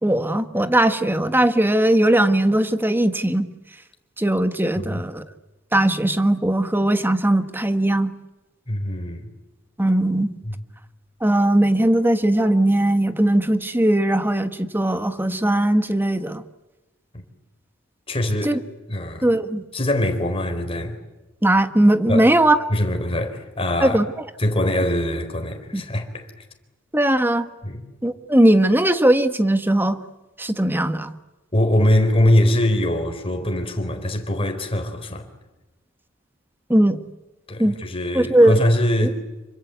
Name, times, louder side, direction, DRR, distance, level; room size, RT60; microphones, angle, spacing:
voice 1, 0.0-3.5 4.2-5.2 5.7-8.1 9.8-10.4 11.2-16.4 18.4-18.6 19.2-19.6 21.4-22.6 23.8-24.1 25.7-25.8 26.9-27.5 28.0-30.0 30.4-31.1 36.7-37.0 37.6-37.7 38.1-38.6 39.0-39.1, right 1 dB, 10° right, 1.4 m, -19 dB
voice 2, 8.7-9.3 10.4-10.6 17.1-17.2 18.1-18.6 18.9-19.3 19.7-21.0 22.1-22.3 22.7-24.0 24.4-26.3 27.6-27.8 31.5-35.3 37.5-39.2, left 1 dB, 30° left, 4.2 m, -22 dB
27.5 x 25.0 x 8.3 m
head